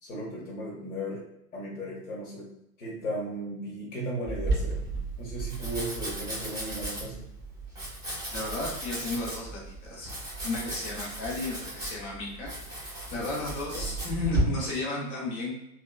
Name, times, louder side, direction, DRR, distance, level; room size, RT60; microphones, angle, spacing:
voice 1, 0.0-1.2 1.5-2.5 2.8-4.8 5.2-7.3 13.7-13.9, right 1 dB, 50° left, -5 dB, 1.1 m, -36 dB
Domestic sounds home sounds, 4.3-14.4, right 2 dB, 10° right, 1.0 m, -34 dB
voice 2, 8.3-10.1 10.4-15.5, left 2 dB, 20° left, -3 dB, 0.8 m, -34 dB
2.9 x 2.2 x 2.2 m, 0.82 s
figure-of-eight pair, 105°, 48 cm